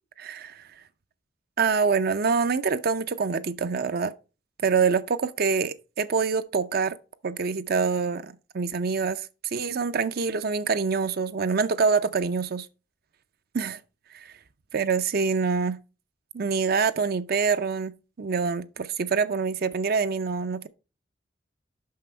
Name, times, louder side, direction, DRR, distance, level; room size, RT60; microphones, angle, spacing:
voice 1, 0.2-0.6 1.6-4.1 4.6-7.0 7.2-9.3 9.5-12.7 13.5-13.8 14.1-14.3 14.7-15.8 16.3-20.7, right 5 dB, 55° right, 0.5 m, -25 dB
5.9 x 5.7 x 4.4 m
head